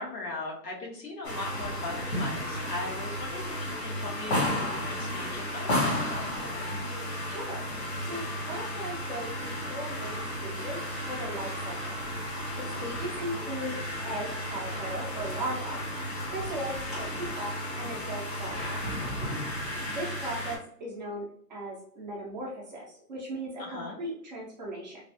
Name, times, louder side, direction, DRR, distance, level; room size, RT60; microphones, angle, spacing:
voice 1, 0.0-6.5 12.7-12.9 19.6-20.0 23.6-24.0, left 2 dB, 80° left, -1 dB, 1.4 m, -39 dB
sound 1, 1.2-20.6, left 1 dB, 40° left, 0.8 m, -33 dB
voice 2, 7.3-7.6 8.0-11.9 12.6-15.8 16.3-18.8 19.8-21.2 21.5-25.0, right 1 dB, 30° right, -5 dB, 0.6 m, -38 dB
3.1 x 2.4 x 2.6 m, 0.62 s
hypercardioid pair, 150°, 49 cm